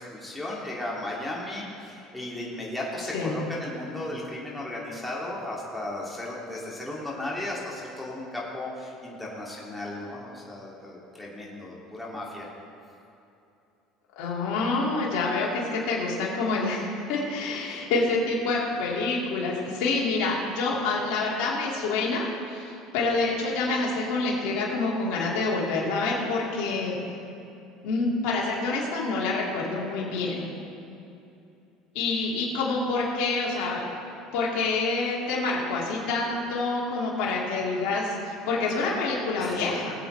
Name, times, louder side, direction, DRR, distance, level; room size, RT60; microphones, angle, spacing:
voice 1, 0.0-12.5 17.6-17.9 39.4-39.7, left 1 dB, 5° left, -5 dB, 2.7 m, -35 dB
voice 2, 14.2-27.0 27.8-30.4 31.9-33.9 34.3-39.9, left 3 dB, 70° left, -5 dB, 2.5 m, -27 dB
20.0 x 8.0 x 3.4 m, 2.7 s
supercardioid pair, 105°, 0 cm